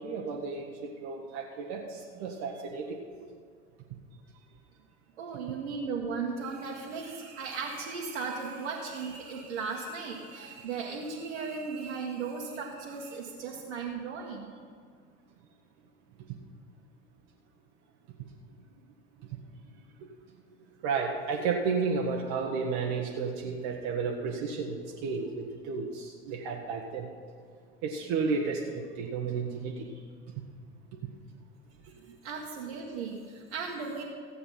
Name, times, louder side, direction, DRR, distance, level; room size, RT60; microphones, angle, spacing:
voice 1, 0.0-3.0 20.8-27.1 27.8-29.7, right 5 dB, 55° right, 0 dB, 1.3 m, -32 dB
voice 2, 5.2-14.5 32.2-34.0, right 5 dB, 70° right, -3 dB, 1.7 m, -36 dB
15.0 x 8.5 x 5.7 m, 2.1 s
figure-of-eight pair, 70°, 35 cm